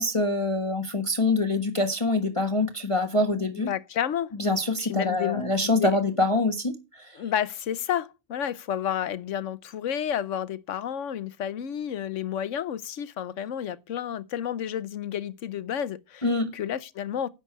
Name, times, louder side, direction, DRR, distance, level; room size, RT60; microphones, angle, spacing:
voice 1, 0.0-3.7 4.4-7.1 16.2-16.5, left 2 dB, 20° left, 1.3 m, -25 dB
voice 2, 3.5-4.3 4.8-6.0 7.1-17.3, left 9 dB, 60° left, 1.0 m, -31 dB
11.0 x 7.5 x 4.6 m
omnidirectional pair, 1.6 m